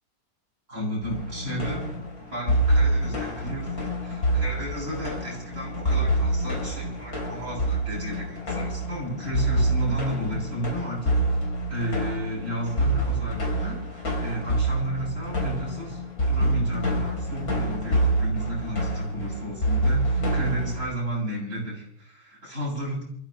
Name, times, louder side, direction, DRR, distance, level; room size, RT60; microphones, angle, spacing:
voice 1, 0.7-1.8 2.3-13.8 14.2-23.0, equal, 45° right, -5 dB, 7.7 m, -33 dB
sound 1, 1.0-20.9, right 1 dB, 55° left, 4.4 m, -26 dB
28.0 x 15.0 x 3.2 m, 0.66 s
omnidirectional pair, 1.9 m